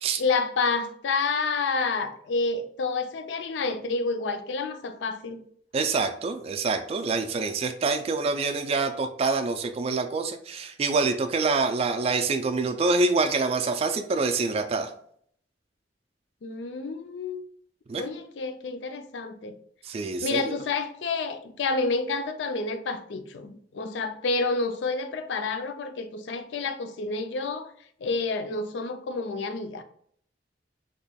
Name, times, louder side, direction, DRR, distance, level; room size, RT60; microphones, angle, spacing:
voice 1, 0.2-5.4 16.4-17.4 17.9-19.6 20.2-27.7 28.0-29.8, left 3 dB, 80° left, 0.4 m, -29 dB
voice 2, 5.7-14.9 17.9-18.0 19.8-20.6, right 3 dB, 35° right, 0.3 m, -26 dB
4.1 x 2.9 x 2.2 m
head